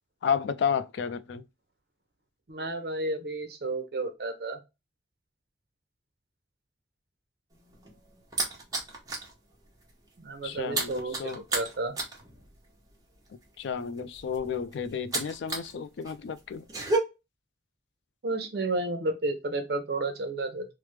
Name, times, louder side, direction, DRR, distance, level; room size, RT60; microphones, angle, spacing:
voice 1, 0.2-1.4 10.4-11.4 13.6-16.7, left 6 dB, 70° left, 0.3 m, -31 dB
voice 2, 2.5-4.6 10.2-12.0 18.2-20.7, right 2 dB, 55° right, 0.5 m, -32 dB
sound 1, 7.5-9.3 9.7-9.9 10.2-15.7 16.0-17.0, right 3 dB, 20° right, 0.7 m, -33 dB
3.2 x 2.0 x 3.1 m
head